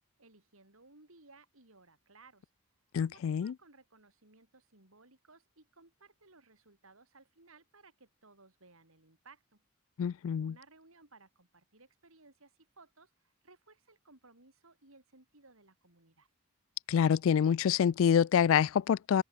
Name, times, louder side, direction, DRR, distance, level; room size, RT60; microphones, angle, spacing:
voice 1, 0.2-2.5 3.1-9.6 10.4-16.3, right 3 dB, 70° right, 4.2 m, -61 dB
voice 2, 2.9-3.5 10.0-10.6 16.9-19.2, left 8 dB, 65° left, 0.3 m, -26 dB
head